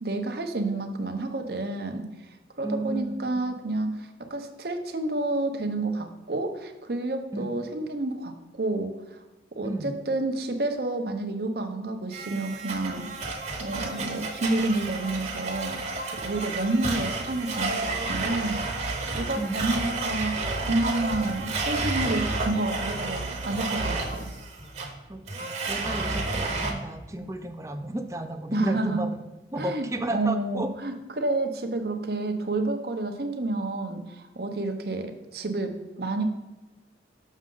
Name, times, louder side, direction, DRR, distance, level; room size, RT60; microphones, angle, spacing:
voice 1, 0.0-2.1 2.6-9.2 9.6-13.1 13.6-18.6 19.1-24.3 28.5-29.0 29.6-36.2, right 2 dB, 60° right, 6 dB, 0.8 m, -30 dB
voice 2, 2.6-3.5 7.3-7.5 9.6-9.9 19.4-19.6 25.1-29.1 29.5-30.7, right 1 dB, 15° right, 6 dB, 0.5 m, -32 dB
Domestic sounds home sounds, 12.1-26.7, right 3 dB, 40° right, 1.0 m, -31 dB
6.4 x 6.3 x 3.8 m, 1.1 s
head